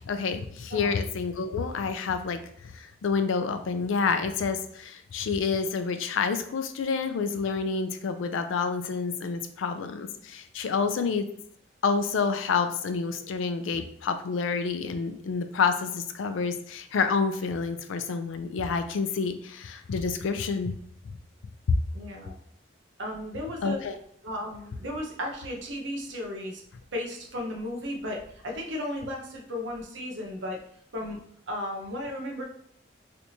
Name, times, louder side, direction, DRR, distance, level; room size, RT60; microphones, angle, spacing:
voice 1, 0.1-11.3 11.8-20.7 21.7-21.8 23.6-24.0, left 5 dB, 90° left, 9 dB, 0.4 m, -28 dB
voice 2, 21.9-22.3 23.0-23.8 24.2-26.6 26.9-30.6 30.9-31.2 31.5-32.4, left 1 dB, 70° right, 1 dB, 0.8 m, -35 dB
3.3 x 2.8 x 2.7 m, 0.65 s
head